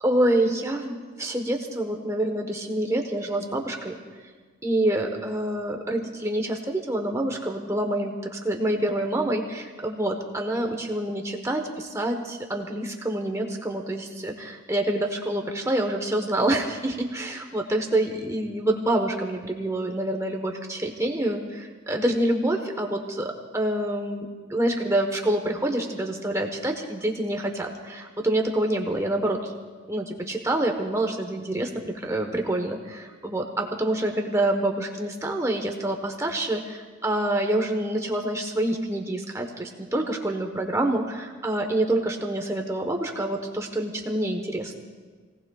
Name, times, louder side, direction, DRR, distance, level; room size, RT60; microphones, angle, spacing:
voice 1, 0.0-4.0 4.6-29.5 29.9-44.8, right 1 dB, 15° right, 2 dB, 1.1 m, -27 dB
27.5 x 18.0 x 2.3 m, 1.5 s
head